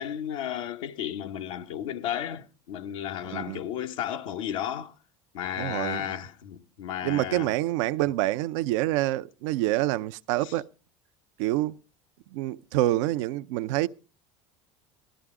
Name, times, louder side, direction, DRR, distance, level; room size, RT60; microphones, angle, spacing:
voice 1, 0.0-4.9 5.3-7.5 10.4-10.5, left 10 dB, 80° left, 1.1 m, -33 dB
voice 2, 3.2-3.6 5.6-6.2 7.0-10.7 11.4-11.8 12.3-13.9, right 16 dB, 75° right, 0.6 m, -27 dB
17.0 x 12.5 x 3.6 m
supercardioid pair, 95°, 16 cm